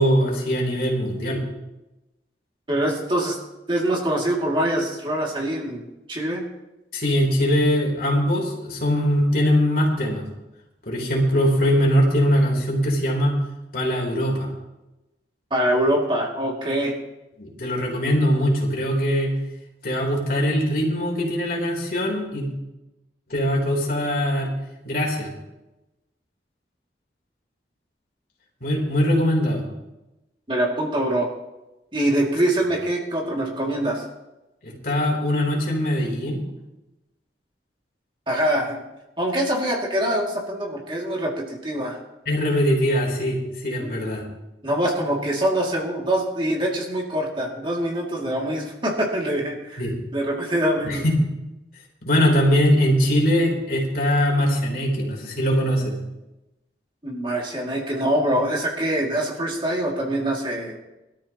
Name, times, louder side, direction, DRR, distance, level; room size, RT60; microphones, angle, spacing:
voice 1, 0.0-1.4 6.9-10.2 10.9-13.3 13.7-14.5 17.4-19.3 19.8-22.5 23.3-24.5 24.8-25.3 28.6-29.6 34.6-36.4 42.3-44.2 49.8-49.9 50.8-51.1 52.0-55.9, equal, 55° left, -1 dB, 3.7 m, -21 dB
voice 2, 2.7-3.4 3.7-5.8 6.1-6.4 15.5-16.9 30.5-31.3 31.9-34.0 38.3-38.8 39.2-42.0 43.8-43.9 44.6-49.8 50.1-51.0 57.0-60.8, right 1 dB, 30° right, -2 dB, 2.5 m, -24 dB
22.5 x 13.0 x 3.0 m, 0.99 s
head